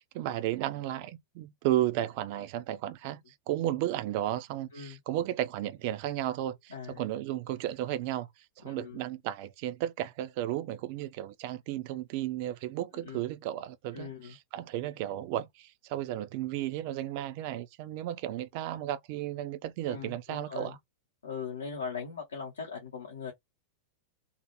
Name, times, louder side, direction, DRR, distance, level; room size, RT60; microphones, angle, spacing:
voice 1, 0.1-8.3 8.6-20.8, right 13 dB, 45° right, 0.3 m, -34 dB
voice 2, 6.7-7.0 8.6-9.0 13.0-13.2 13.9-14.4 17.1-17.2 19.9-20.8 21.2-23.3, left 6 dB, 70° left, 0.7 m, -40 dB
2.4 x 2.1 x 2.8 m
figure-of-eight pair, 90°, 0 cm